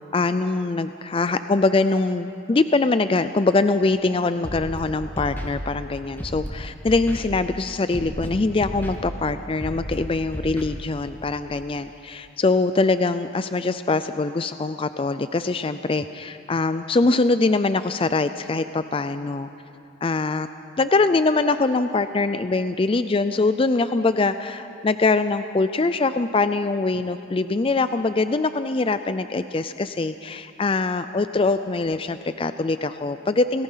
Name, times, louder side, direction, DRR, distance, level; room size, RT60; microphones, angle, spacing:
voice 1, 0.1-19.5 20.0-20.5 20.8-33.6, left 3 dB, 25° left, 11 dB, 0.4 m, -23 dB
Scratching (performance technique), 4.4-4.8 5.2-5.5 6.2-6.5 6.9-7.2 7.9-8.3 8.6-8.9 9.6-9.9 10.3-10.6, equal, 10° left, 2.1 m, -32 dB
28.0 x 18.5 x 5.7 m, 2.6 s
head